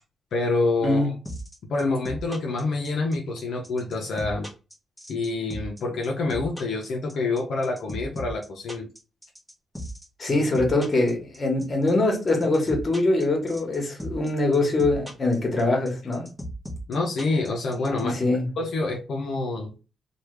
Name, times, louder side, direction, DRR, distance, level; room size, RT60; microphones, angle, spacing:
voice 1, 0.3-1.1 1.7-4.5 5.1-8.9 16.9-18.2 18.6-19.7, left 3 dB, 75° left, 0 dB, 0.6 m, -27 dB
sound 1, 1.2-18.0, equal, ahead, 1.1 m, -37 dB
voice 2, 10.2-16.3 18.0-18.5, left 2 dB, 35° left, 2 dB, 1.4 m, -23 dB
3.1 x 2.4 x 3.2 m, 0.31 s
cardioid pair, 90°, 0 cm